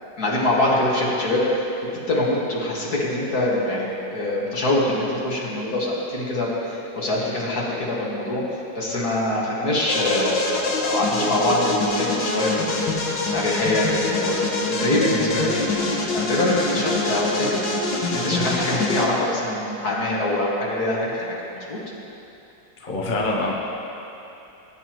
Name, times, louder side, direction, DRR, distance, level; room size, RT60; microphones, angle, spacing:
voice 1, 0.2-1.4 2.1-12.8 13.3-21.8, left 1 dB, 55° left, -5 dB, 2.4 m, -24 dB
sound 1, 9.9-19.1, left 2 dB, 80° left, 1.9 m, -25 dB
voice 2, 22.8-23.5, left 2 dB, 30° left, -3 dB, 1.1 m, -24 dB
19.5 x 9.5 x 3.1 m, 2.9 s
omnidirectional pair, 1.9 m